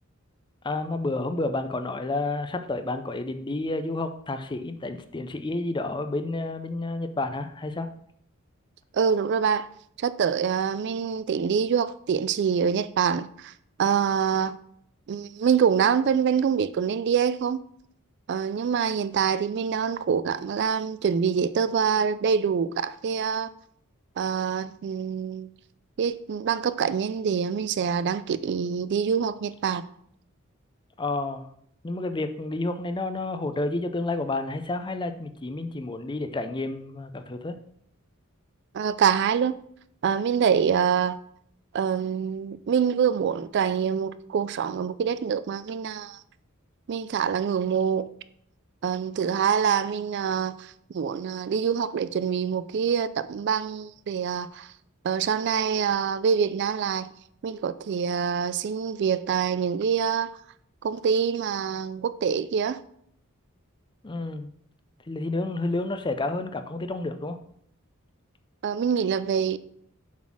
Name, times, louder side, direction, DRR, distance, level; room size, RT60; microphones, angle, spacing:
voice 1, 0.6-7.9 31.0-31.5 31.8-37.6 64.0-64.5 65.1-67.4, left 2 dB, 20° left, 0.5 m, -30 dB
voice 2, 8.9-9.7 10.0-13.5 13.8-14.6 15.1-17.6 18.3-23.5 24.2-25.5 26.0-29.8 38.7-39.6 40.0-41.2 41.7-46.2 46.9-48.1 48.8-54.7 55.0-57.1 57.4-60.3 60.8-62.8 68.6-69.6, right 7 dB, 55° right, 0.3 m, -25 dB
7.3 x 4.1 x 6.0 m
head